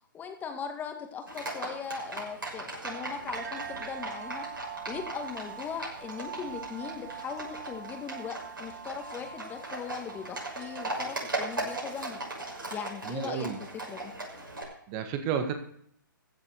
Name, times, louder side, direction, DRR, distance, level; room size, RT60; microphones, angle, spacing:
voice 1, 0.1-4.5 4.9-12.2 12.7-14.1, left 6 dB, 15° left, 5 dB, 1.9 m, -39 dB
Livestock farm animals working animals, 1.3-14.6, right 2 dB, 75° right, 6.4 m, -39 dB
sound 1, 2.0-13.6, right 8 dB, 50° right, 1.7 m, -45 dB
voice 2, 13.0-13.6 14.9-15.5, right 7 dB, 30° right, 7 dB, 1.6 m, -31 dB
15.0 x 7.5 x 6.5 m, 0.67 s
figure-of-eight pair, 130°, 11 cm